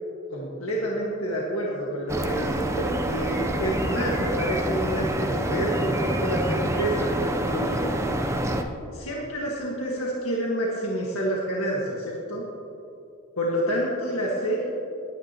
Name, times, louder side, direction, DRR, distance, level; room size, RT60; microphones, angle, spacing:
voice 1, 0.3-7.7 8.9-12.4 13.4-14.7, equal, 70° left, -3 dB, 1.8 m, -28 dB
sound 1, 2.1-8.6, right 1 dB, 15° right, 0.7 m, -27 dB
20.0 x 9.7 x 3.0 m, 2.7 s
head